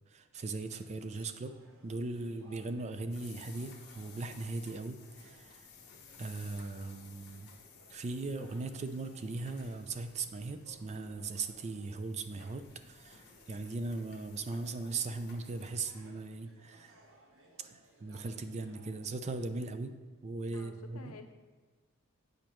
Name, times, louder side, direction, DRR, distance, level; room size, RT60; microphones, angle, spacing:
voice 1, 0.1-1.6 1.8-5.7 6.2-7.5 7.9-16.9 17.6-20.0 20.2-21.2, right 3 dB, 30° right, 9 dB, 0.4 m, -39 dB
sound 1, 0.5-19.8, right 1 dB, 65° right, 1.2 m, -63 dB
sound 2, 3.1-15.7, left 5 dB, 50° left, 1.0 m, -57 dB
voice 2, 20.5-21.3, left 4 dB, 85° left, 6 dB, 0.7 m, -50 dB
8.6 x 5.0 x 3.0 m, 1.4 s
head